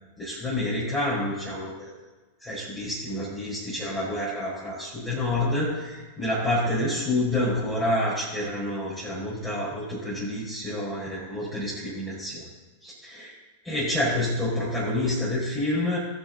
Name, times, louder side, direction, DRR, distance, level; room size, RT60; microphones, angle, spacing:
voice 1, 0.2-1.9 2.4-12.4 12.8-13.4 13.6-16.0, left 1 dB, 20° left, -8 dB, 4.6 m, -28 dB
20.0 x 7.0 x 4.0 m, 1.2 s
figure-of-eight pair, 90°, 0 cm